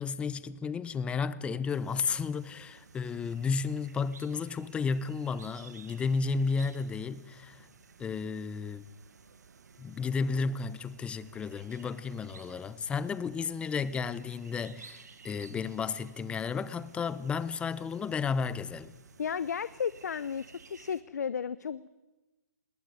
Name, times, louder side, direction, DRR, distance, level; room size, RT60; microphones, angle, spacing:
voice 1, 0.0-7.7 8.0-8.8 9.8-18.9, left 5 dB, 10° left, 0.9 m, -33 dB
sound 1, 1.7-21.0, right 5 dB, 75° right, 2.0 m, -56 dB
voice 2, 19.2-21.9, left 7 dB, 75° left, 0.8 m, -34 dB
20.0 x 19.5 x 9.9 m
hypercardioid pair, 135°, 9 cm